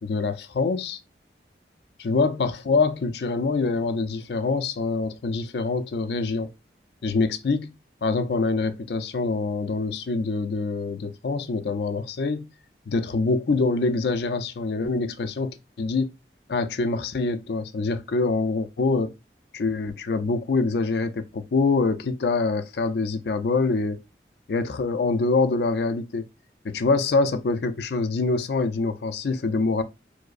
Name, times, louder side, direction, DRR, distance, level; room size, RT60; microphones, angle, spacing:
voice 1, 0.0-1.0 2.0-6.5 7.0-7.7 8.0-12.5 12.9-16.1 16.5-19.1 19.5-24.0 24.5-26.3 26.6-29.8, left 3 dB, 65° left, 0.4 m, -25 dB
4.7 x 2.0 x 2.4 m
head